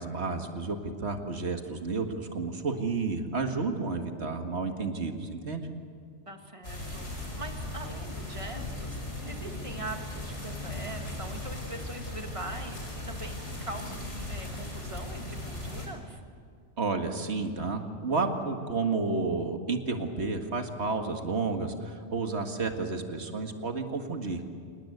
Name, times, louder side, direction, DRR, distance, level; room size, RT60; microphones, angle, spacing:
voice 1, 0.0-5.7 16.8-24.4, right 4 dB, 65° right, 5 dB, 2.1 m, -31 dB
voice 2, 6.3-16.2, right 2 dB, 25° right, 4 dB, 1.9 m, -42 dB
sound 1, 6.6-15.9, left 2 dB, 70° left, 5.7 m, -38 dB
28.0 x 19.5 x 8.0 m, 2.2 s
omnidirectional pair, 1.2 m